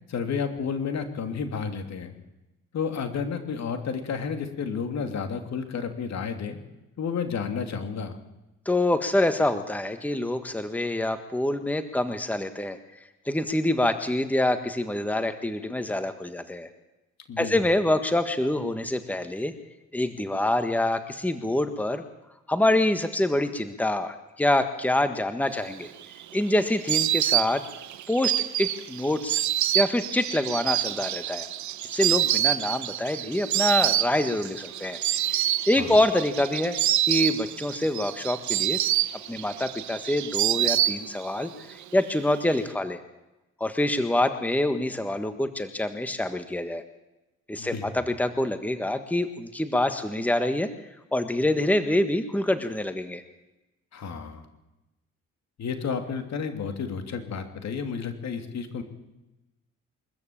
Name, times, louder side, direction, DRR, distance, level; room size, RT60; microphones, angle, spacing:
voice 1, 0.1-2.1 2.7-6.6 7.0-8.2 17.3-17.5 35.8-36.0 47.6-47.8 53.9-54.4 55.6-58.8, left 6 dB, 65° left, 7 dB, 3.0 m, -31 dB
voice 2, 8.6-12.8 13.3-16.7 17.4-19.5 19.9-22.0 22.5-25.9 26.3-27.6 28.1-28.3 28.6-29.4 29.7-31.5 31.9-35.0 35.7-36.8 37.0-38.8 39.3-43.0 43.6-46.8 47.5-50.7 51.1-53.2, left 1 dB, 5° left, 9 dB, 1.5 m, -26 dB
Insect, 25.7-41.4 41.7-42.5, right 13 dB, 70° right, 0.9 m, -27 dB
23.0 x 14.0 x 8.8 m, 0.98 s
cardioid pair, 90°, 30 cm